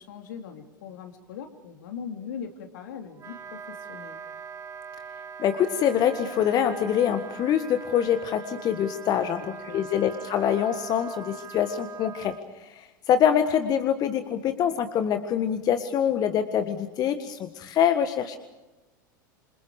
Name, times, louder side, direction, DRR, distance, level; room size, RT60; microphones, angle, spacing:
voice 1, 0.0-4.2 9.1-9.3 9.7-9.8, left 7 dB, 65° left, 5 dB, 3.1 m, -40 dB
Wind instrument woodwind instrument, 3.1-12.4, right 6 dB, 30° right, 2.0 m, -41 dB
voice 2, 5.4-18.4, left 9 dB, 35° left, 9 dB, 1.7 m, -25 dB
27.5 x 27.0 x 5.1 m, 1.1 s
figure-of-eight pair, 85°, 11 cm